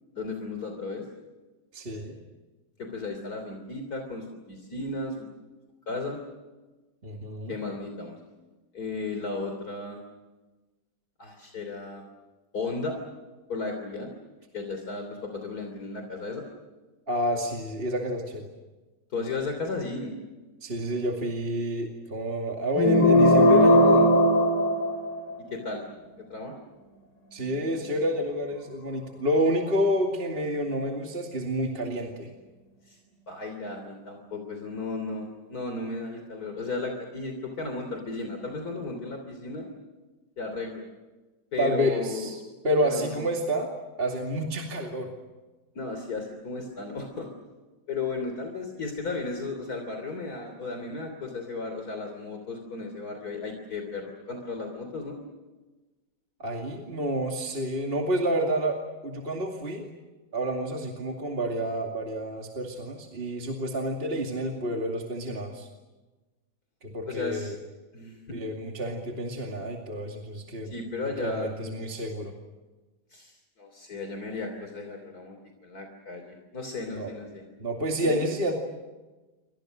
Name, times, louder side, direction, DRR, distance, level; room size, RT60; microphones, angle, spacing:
voice 1, 0.1-1.1 2.8-5.3 5.9-6.2 7.5-8.2 8.7-10.0 11.2-12.0 12.5-13.0 13.5-14.1 14.5-16.4 19.1-20.1 25.5-25.8 26.3-26.5 32.9-33.0 33.3-39.7 40.4-40.9 41.5-42.3 42.8-43.2 45.8-47.3 47.9-55.2 67.1-67.6 67.9-68.4 70.7-71.7 73.1-75.4 75.6-77.5 78.0-78.2, left 3 dB, 60° left, 4 dB, 3.7 m, -34 dB
voice 2, 1.7-2.2 7.0-7.5 17.1-18.5 20.6-24.1 27.3-32.3 41.6-43.7 44.0-45.1 56.4-59.9 60.3-65.7 66.8-67.5 68.3-70.7 71.2-72.3 77.0-77.1 77.6-78.6, equal, 35° right, 2 dB, 2.7 m, -29 dB
sound 1, 22.8-25.4, left 1 dB, 85° left, 4.4 m, -18 dB
29.0 x 25.0 x 6.5 m, 1.2 s
omnidirectional pair, 1.9 m